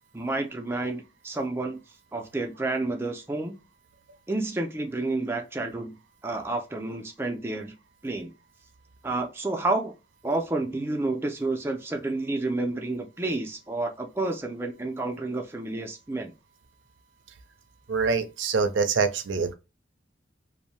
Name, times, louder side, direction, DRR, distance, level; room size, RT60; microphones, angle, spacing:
voice 1, 0.1-1.8 2.1-3.6 4.3-6.0 6.2-7.7 8.0-8.3 9.0-9.9 10.2-16.3, right 2 dB, 15° right, 0.4 m, -30 dB
voice 2, 17.9-19.5, right 5 dB, 80° right, 0.4 m, -25 dB
2.6 x 2.1 x 3.0 m
head